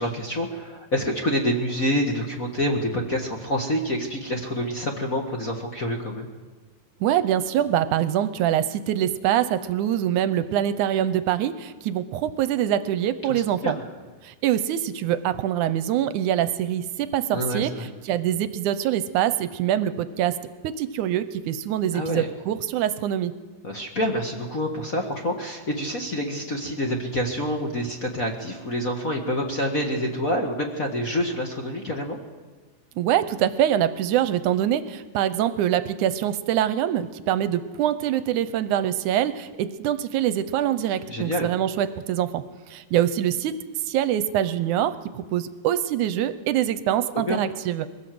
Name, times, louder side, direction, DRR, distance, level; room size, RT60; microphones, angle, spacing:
voice 1, 0.0-6.3 13.3-13.7 17.3-17.9 21.9-22.3 23.6-32.2 41.1-41.5 47.1-47.4, equal, 35° left, 2 dB, 1.4 m, -27 dB
voice 2, 7.0-13.8 14.2-17.7 18.1-20.4 20.6-23.3 33.0-42.4 42.7-43.5 43.9-45.0 45.3-47.9, right 11 dB, 75° right, 13 dB, 2.1 m, -24 dB
21.5 x 16.0 x 7.7 m, 1.3 s
omnidirectional pair, 3.9 m